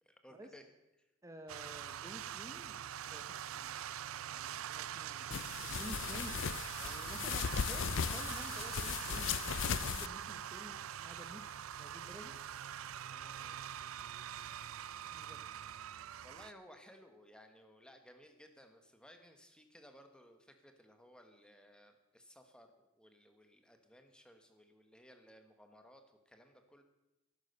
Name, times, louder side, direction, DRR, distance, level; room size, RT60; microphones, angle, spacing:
voice 1, 0.0-0.6 1.0-1.1 13.1-13.6 16.2-26.8, equal, 5° left, 6 dB, 1.3 m, -60 dB
voice 2, 1.2-2.8 3.0-3.8 4.2-6.3 6.8-9.3 9.7-12.3 15.1-15.4, equal, 15° right, 5 dB, 1.0 m, -52 dB
sound 1, 1.5-16.5, right 10 dB, 80° right, 0.5 m, -44 dB
sound 2, 5.3-10.1, left 7 dB, 60° left, 0.5 m, -37 dB
14.5 x 12.0 x 6.6 m, 0.98 s
head